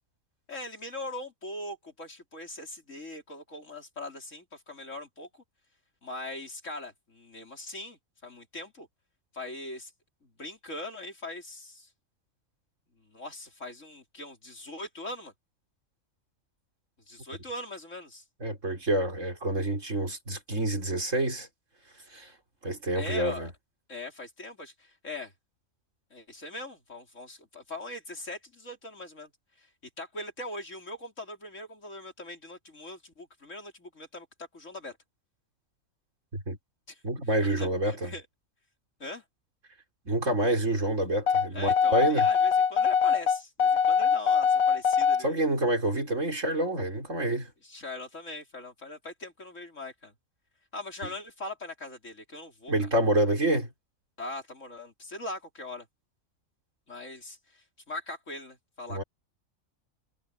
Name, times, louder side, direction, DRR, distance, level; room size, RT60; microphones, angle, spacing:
voice 1, 0.5-5.4 6.0-8.9 9.3-9.9 10.2-11.9 13.0-15.3 17.1-18.2 22.9-23.5 23.9-25.3 26.1-29.3 29.6-29.7 30.0-34.3 34.5-35.0 36.9-37.0 37.4-38.2 39.0-39.2 41.5-45.5 47.6-50.1 50.7-52.9 54.2-55.9 56.9-59.0, left 2 dB, 65° left, 4.8 m, -41 dB
voice 2, 18.4-21.5 22.1-22.3 22.6-23.5 36.3-36.6 37.0-38.1 40.1-42.3 45.2-47.5 52.7-53.7 58.9-59.0, right 1 dB, 65° right, 5.3 m, -27 dB
sound 1, 41.3-45.2, left 7 dB, 85° left, 1.5 m, -23 dB
omnidirectional pair, 1.4 m